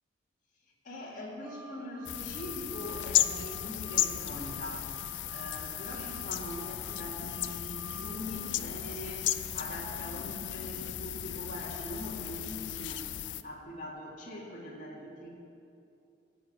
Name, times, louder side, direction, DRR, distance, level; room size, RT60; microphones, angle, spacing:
voice 1, 0.8-15.3, left 1 dB, 45° left, -4 dB, 2.2 m, -42 dB
sound 1, 1.4-8.6, right 3 dB, 15° right, 0.5 m, -51 dB
sound 2, 2.0-13.4, left 12 dB, 80° left, 0.4 m, -35 dB
14.0 x 5.7 x 8.4 m, 2.7 s
head